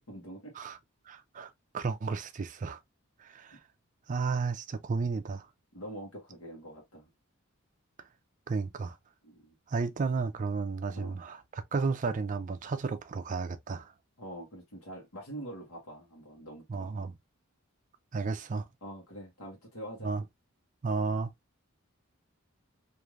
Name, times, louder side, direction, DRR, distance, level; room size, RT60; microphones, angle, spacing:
voice 1, 0.1-0.6 3.5-3.6 5.7-7.1 9.2-9.5 10.9-11.2 14.2-16.9 18.8-20.1, right 1 dB, 80° left, 1.0 m, -45 dB
voice 2, 1.1-2.8 3.2-3.6 4.1-5.5 8.5-8.9 9.7-13.9 16.7-17.1 18.1-18.6 20.0-20.2 20.8-21.3, right 4 dB, 35° right, 0.4 m, -33 dB
3.2 x 2.5 x 2.3 m
head